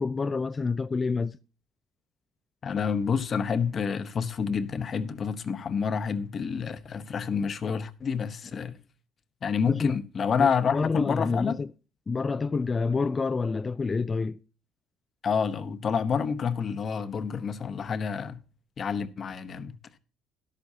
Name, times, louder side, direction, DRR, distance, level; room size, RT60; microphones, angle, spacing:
voice 1, 0.0-1.4 9.7-9.9 10.4-11.7 12.1-14.4, left 4 dB, 30° left, 0.4 m, -28 dB
voice 2, 2.6-8.8 9.4-11.6 15.2-18.4 18.8-20.0, left 6 dB, 45° left, 1.0 m, -28 dB
13.5 x 11.0 x 2.8 m
cardioid pair, 105°, 0 cm